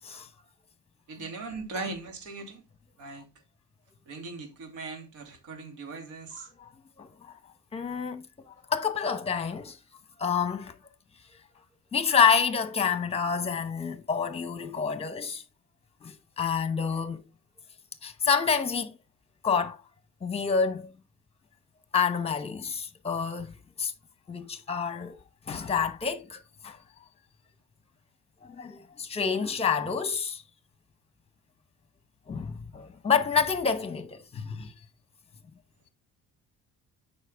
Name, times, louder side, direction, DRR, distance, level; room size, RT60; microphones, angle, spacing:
voice 1, 1.1-2.6 3.0-3.3 4.1-6.5, right 3 dB, 90° right, 2.6 m, -39 dB
voice 2, 7.7-8.2 8.7-9.8 10.2-10.7 11.9-15.4 16.0-17.2 18.0-18.9 19.4-19.8 20.2-20.9 21.9-23.5 23.8-23.9 24.3-25.2 25.5-26.8 28.4-30.4 32.3-34.7, left 6 dB, 20° left, 0.9 m, -28 dB
8.2 x 5.5 x 3.5 m
cardioid pair, 140°, 29 cm